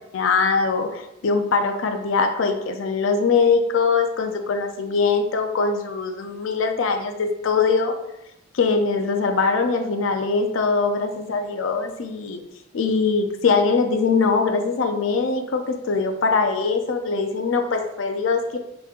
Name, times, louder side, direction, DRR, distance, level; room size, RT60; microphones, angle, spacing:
voice 1, 0.1-8.0 8.5-12.4 12.7-18.6, left 4 dB, 75° left, 7 dB, 0.4 m, -22 dB
6.9 x 3.0 x 2.4 m, 0.86 s
head